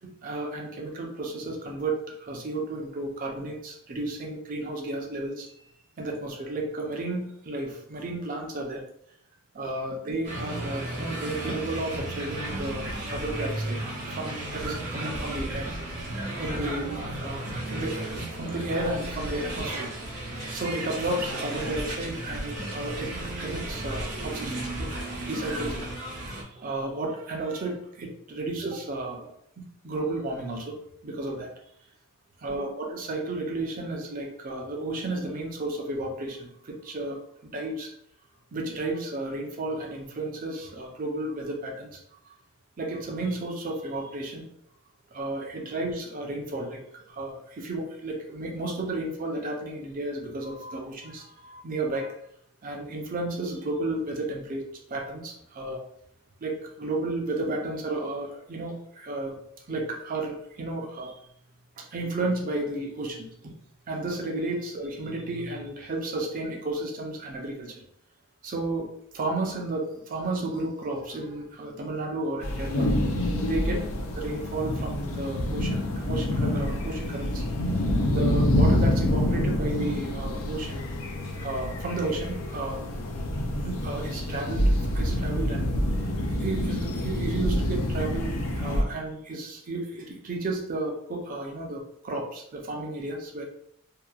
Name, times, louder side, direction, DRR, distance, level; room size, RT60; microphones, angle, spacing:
voice 1, 0.0-5.5 6.0-8.9 9.5-13.8 14.1-15.7 16.4-20.0 20.5-24.9 25.2-29.3 29.6-30.8 31.0-31.5 32.4-37.9 38.5-42.0 42.3-42.4 42.8-44.4 45.1-52.2 52.6-55.8 56.4-59.4 59.7-61.1 61.8-63.5 63.9-67.8 68.4-68.9 69.1-72.9 73.4-73.8 74.2-77.4 78.1-80.9 81.3-82.8 83.6-84.7 84.9-85.7 86.4-93.4, right 2 dB, 40° right, 1 dB, 0.5 m, -33 dB
sound 1, 10.2-26.4, right 1 dB, 90° right, 0.8 m, -34 dB
sound 2, 72.4-88.8, left 1 dB, 65° left, 0.4 m, -27 dB
2.7 x 2.1 x 2.3 m, 0.69 s
head